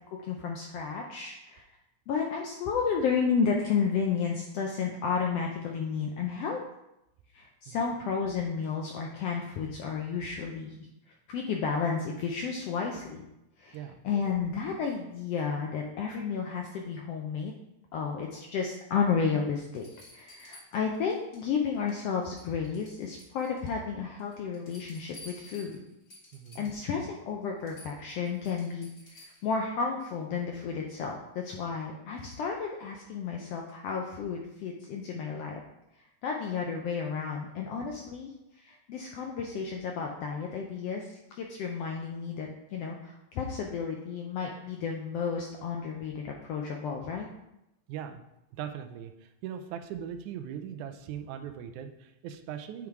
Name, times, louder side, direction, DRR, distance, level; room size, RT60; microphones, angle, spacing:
voice 1, 0.1-1.6 2.1-6.6 7.3-10.8 11.3-13.2 13.6-17.5 17.9-19.9 20.1-25.8 26.5-35.6 36.0-38.3 38.6-47.3, left 6 dB, 75° left, 1 dB, 1.4 m, -32 dB
sound 1, 19.7-21.5 21.7-22.1 22.4-23.8 24.2-26.9 27.3-27.4 27.6-29.6 31.2-31.3, left 2 dB, 30° left, 2.1 m, -53 dB
voice 2, 26.3-26.6 47.9-48.2 48.6-52.9, right 9 dB, 85° right, 7 dB, 2.0 m, -40 dB
8.7 x 3.6 x 4.6 m, 0.88 s
omnidirectional pair, 3.4 m